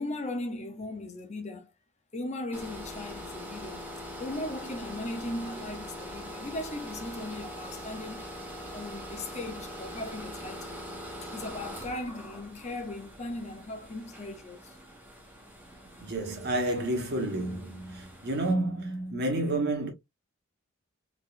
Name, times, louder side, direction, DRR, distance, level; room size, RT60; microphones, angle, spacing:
voice 1, 0.0-1.7 2.1-3.8 4.2-8.3 8.7-10.8 11.2-14.8, left 2 dB, 35° left, 0.8 m, -38 dB
sound 1, 2.5-18.5, equal, 10° right, 1.1 m, -43 dB
voice 2, 16.0-19.9, right 1 dB, 50° right, 1.5 m, -30 dB
3.8 x 3.6 x 2.6 m
head